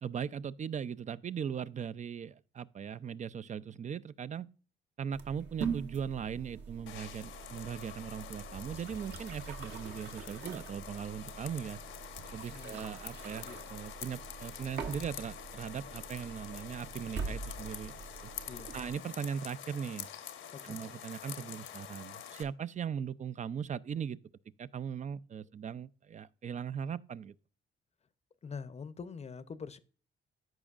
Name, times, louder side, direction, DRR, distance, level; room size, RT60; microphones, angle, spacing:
voice 1, 0.0-4.5 5.0-11.8 12.3-18.3 18.7-20.1 20.6-24.2 24.6-27.3, right 7 dB, 35° right, 0.4 m, -39 dB
sound 1, 5.1-19.0, right 6 dB, 60° right, 1.2 m, -44 dB
sound 2, 6.9-22.4, left 9 dB, 75° left, 1.0 m, -47 dB
voice 2, 12.5-13.0 13.4-13.7 18.5-18.8 20.5-20.9 28.4-29.8, left 5 dB, 35° left, 0.7 m, -45 dB
14.0 x 5.2 x 2.4 m
cardioid pair, 90°, 20 cm